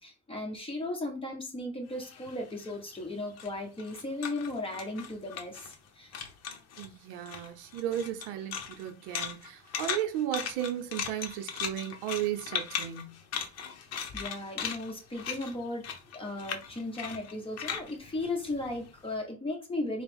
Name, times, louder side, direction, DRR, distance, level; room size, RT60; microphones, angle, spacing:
voice 1, 0.0-6.1 14.1-15.9 16.1-20.0, left 2 dB, 15° left, 1.3 m, -36 dB
sound 1, 1.9-5.9 6.1-6.9 7.2-19.1, left 7 dB, 45° left, 0.9 m, -38 dB
voice 2, 6.8-13.2, right 11 dB, 70° right, 0.8 m, -35 dB
4.3 x 2.3 x 3.5 m
supercardioid pair, 95°, 36 cm